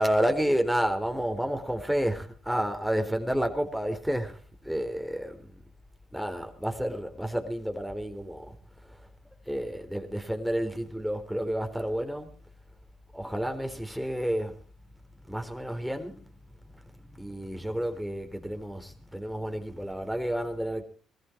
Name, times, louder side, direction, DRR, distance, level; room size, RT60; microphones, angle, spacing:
voice 1, 0.0-5.6 6.1-8.6 8.8-9.1 9.5-12.4 13.1-14.6 15.2-16.3 16.7-20.8, equal, ahead, 4.0 m, -30 dB
21.0 x 14.5 x 4.7 m
supercardioid pair, 65°, 0 cm